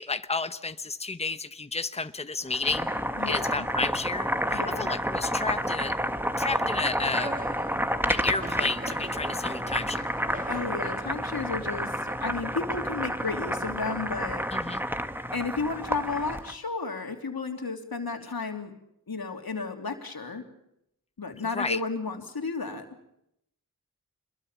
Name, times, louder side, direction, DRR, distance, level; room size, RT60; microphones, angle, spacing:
voice 1, 0.0-2.9 3.3-5.9 6.4-7.3 8.1-10.0 14.5-14.8 21.5-21.8, left 3 dB, 15° left, 10 dB, 1.0 m, -31 dB
Boiling, 2.5-16.5, equal, 5° right, 1.6 m, -30 dB
voice 2, 3.2-3.7 4.5-4.9 10.5-14.4 15.3-18.7 19.1-20.4 21.2-22.8, left 4 dB, 85° left, 5 dB, 3.1 m, -33 dB
sound 1, 5.3-12.4, right 1 dB, 20° right, 2.7 m, -43 dB
26.0 x 21.5 x 7.3 m, 0.80 s
wide cardioid pair, 50°, 35 cm